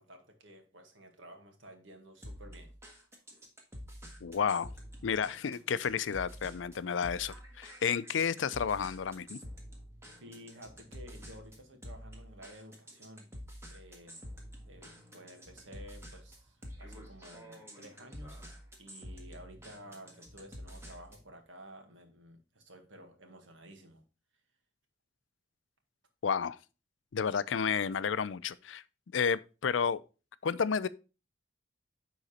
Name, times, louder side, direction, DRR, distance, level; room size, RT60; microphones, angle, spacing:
voice 1, 0.0-2.7 10.2-13.3 13.7-14.2 14.7-18.4 18.8-24.0, equal, 85° right, 1.7 m, -52 dB
sound 1, 2.2-21.3, equal, 15° right, 1.6 m, -48 dB
voice 2, 4.2-4.7 5.0-9.4 26.2-26.6 27.1-28.8 29.1-30.0 30.4-30.9, left 6 dB, 80° left, 0.5 m, -31 dB
9.9 x 3.9 x 4.2 m
head